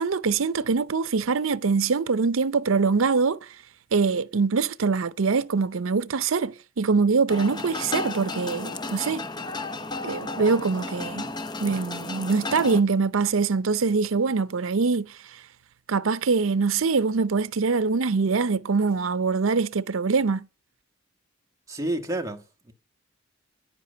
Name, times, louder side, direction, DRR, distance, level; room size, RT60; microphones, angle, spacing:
voice 1, 0.0-3.5 3.9-9.2 10.0-11.3 11.6-15.1 15.9-20.5, right 4 dB, 75° right, 0.6 m, -24 dB
sound 1, 7.3-12.8, left 2 dB, 20° left, 0.8 m, -33 dB
voice 2, 21.7-22.7, right 1 dB, 15° right, 1.4 m, -30 dB
10.5 x 10.0 x 6.7 m
head